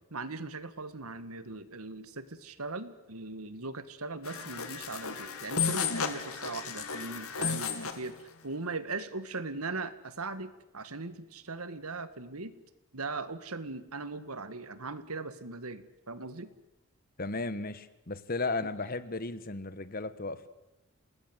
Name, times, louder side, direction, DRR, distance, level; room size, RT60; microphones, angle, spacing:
voice 1, 0.1-12.5 12.9-16.5, right 3 dB, 85° right, 13 dB, 1.8 m, -39 dB
sound 1, 4.2-8.1, left 6 dB, 80° left, 2.4 m, -33 dB
voice 2, 17.2-20.5, left 3 dB, 40° left, 14 dB, 1.4 m, -35 dB
28.0 x 19.5 x 8.1 m, 0.94 s
head